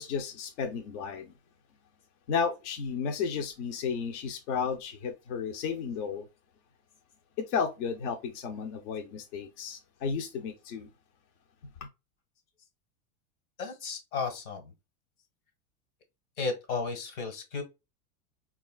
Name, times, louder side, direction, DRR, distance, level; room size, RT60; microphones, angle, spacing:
voice 1, 0.0-1.3 2.3-6.3 7.4-10.9, left 6 dB, 55° left, 0.6 m, -33 dB
voice 2, 13.6-14.7 16.4-17.6, left 4 dB, 90° left, 1.5 m, -34 dB
3.8 x 2.4 x 2.2 m
supercardioid pair, 170°, 43 cm